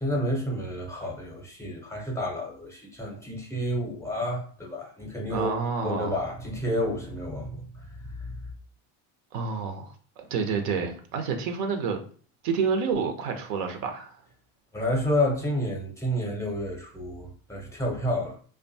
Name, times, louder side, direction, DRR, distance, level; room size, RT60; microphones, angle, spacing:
voice 1, 0.0-5.5 5.8-8.4 14.7-18.3, left 1 dB, 5° left, 0.6 m, -30 dB
voice 2, 5.3-6.2 9.3-12.0 12.4-14.2, right 5 dB, 70° right, 0.7 m, -29 dB
2.5 x 2.2 x 2.6 m
supercardioid pair, 105°, 43 cm